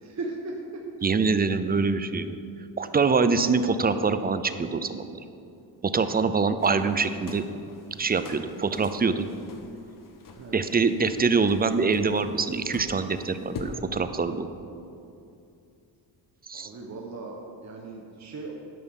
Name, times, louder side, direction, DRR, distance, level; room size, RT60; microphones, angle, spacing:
voice 1, 0.0-0.8 10.3-10.7 16.5-18.6, right 3 dB, 35° right, 0 dB, 1.2 m, -38 dB
voice 2, 1.0-2.4 2.8-5.2 5.8-7.4 8.0-9.2 10.5-14.5 16.5-16.7, right 4 dB, 20° right, 11 dB, 0.5 m, -24 dB
sound 1, 6.6-13.8, left 3 dB, 45° left, 1.2 m, -45 dB
11.0 x 5.6 x 7.1 m, 2.6 s
cardioid pair, 90°, 46 cm